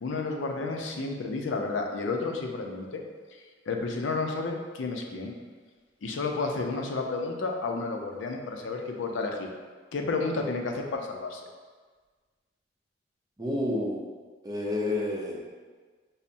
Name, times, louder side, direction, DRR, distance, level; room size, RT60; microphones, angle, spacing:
voice 1, 0.0-3.0 3.7-5.3 6.0-9.5 9.9-11.5, left 3 dB, 90° left, 3 dB, 0.5 m, -31 dB
voice 2, 13.4-14.0 14.4-15.4, left 1 dB, 20° right, -3 dB, 0.5 m, -29 dB
5.4 x 2.0 x 2.6 m, 1.4 s
head